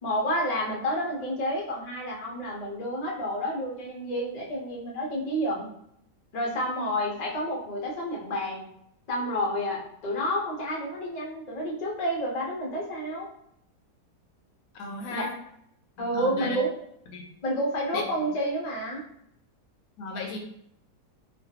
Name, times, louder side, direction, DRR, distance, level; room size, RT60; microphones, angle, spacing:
voice 1, 0.0-5.7 6.3-8.7 9.1-13.3 15.1-15.3 16.0-16.7 17.4-19.0, equal, 50° left, -3 dB, 0.5 m, -29 dB
voice 2, 14.7-15.3 16.0-16.6 17.1-17.3 17.9-18.0 20.0-20.4, left 3 dB, 75° left, 2 dB, 1.0 m, -35 dB
3.2 x 2.2 x 2.7 m, 0.73 s
omnidirectional pair, 1.7 m